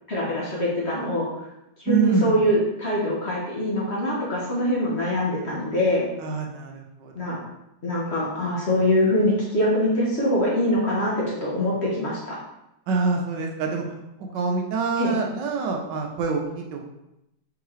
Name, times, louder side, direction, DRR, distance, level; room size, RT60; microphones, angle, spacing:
voice 1, 0.1-1.3 1.8-6.1 7.1-7.4 7.8-12.4 15.0-15.1, left 1 dB, 40° left, -6 dB, 1.1 m, -23 dB
voice 2, 1.9-2.4 6.2-7.5 12.9-13.8 14.2-16.8, right 4 dB, 75° right, 1 dB, 1.3 m, -26 dB
4.6 x 3.6 x 3.2 m, 0.87 s
omnidirectional pair, 2.0 m